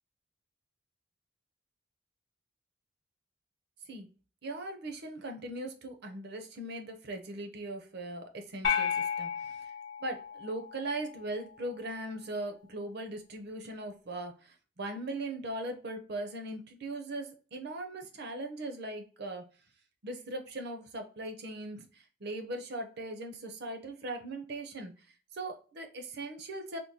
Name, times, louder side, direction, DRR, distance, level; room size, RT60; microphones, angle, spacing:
voice 1, 4.4-9.7 10.0-19.5 20.0-24.9 25.3-26.8, right 2 dB, 50° right, 5 dB, 0.6 m, -39 dB
sound 1, 8.6-11.1, left 7 dB, 60° left, 0.8 m, -33 dB
3.6 x 2.2 x 2.7 m, 0.37 s
head